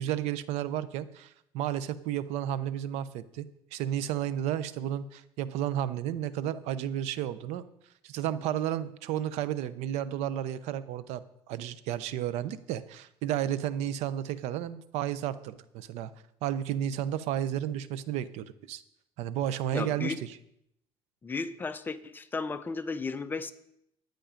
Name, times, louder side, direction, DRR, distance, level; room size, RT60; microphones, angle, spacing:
voice 1, 0.0-7.6 8.0-16.1 16.4-18.8 19.2-20.4, right 11 dB, 85° right, 0.7 m, -32 dB
voice 2, 19.7-20.2 21.2-23.5, left 4 dB, 20° left, 0.6 m, -34 dB
11.5 x 9.2 x 5.1 m
cardioid pair, 155°, 11 cm